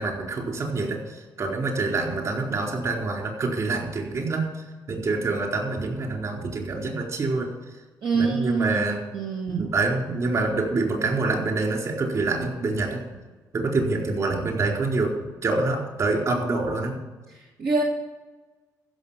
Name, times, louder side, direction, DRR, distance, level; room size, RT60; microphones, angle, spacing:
voice 1, 0.0-4.5 4.9-7.5 8.1-9.0 9.5-13.0 13.5-17.0, right 3 dB, 50° right, 0 dB, 4.4 m, -26 dB
voice 2, 8.0-8.8 9.1-9.7 17.6-17.8, right 4 dB, 70° right, -2 dB, 1.9 m, -25 dB
15.0 x 6.5 x 7.4 m, 1.2 s
cardioid pair, 105°, 7 cm